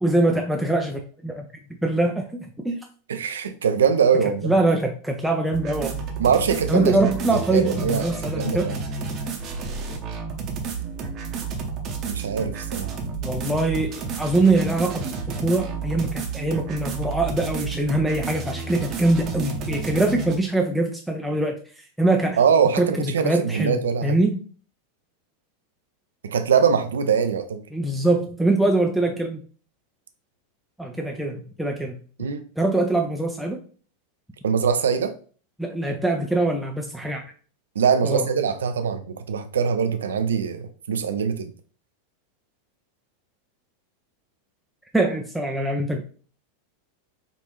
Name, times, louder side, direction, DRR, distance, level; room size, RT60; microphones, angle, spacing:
voice 1, 0.0-1.4 1.8-2.8 4.4-6.1 6.7-8.7 13.2-15.1 15.4-22.4 22.8-24.4 27.7-29.4 30.8-32.0 32.6-33.6 35.6-37.2 38.0-38.3 44.9-46.0, right 2 dB, ahead, 0.5 m, -23 dB
voice 2, 3.1-4.5 6.2-8.8 12.1-12.9 22.4-24.2 26.2-27.6 32.2-32.4 34.4-35.1 37.8-41.5, right 6 dB, 70° right, 0.5 m, -22 dB
sound 1, 5.5-20.4, right 5 dB, 35° right, 0.8 m, -31 dB
4.7 x 2.6 x 3.0 m
figure-of-eight pair, 85°, 0 cm